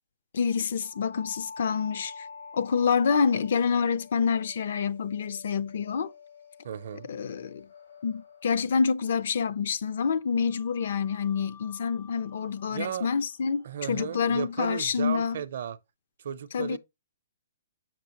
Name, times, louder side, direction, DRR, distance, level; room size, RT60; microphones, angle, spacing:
voice 1, 0.3-2.3 2.5-6.1 7.1-7.7 8.0-15.4 16.5-16.8, left 6 dB, 55° left, 0.5 m, -27 dB
sound 1, 0.8-9.6 10.5-15.3, left 5 dB, 85° left, 2.5 m, -49 dB
voice 2, 6.6-7.1 12.7-13.1 13.6-15.8 16.2-16.8, right 9 dB, 55° right, 0.5 m, -35 dB
7.7 x 6.0 x 3.0 m
hypercardioid pair, 175°, 0 cm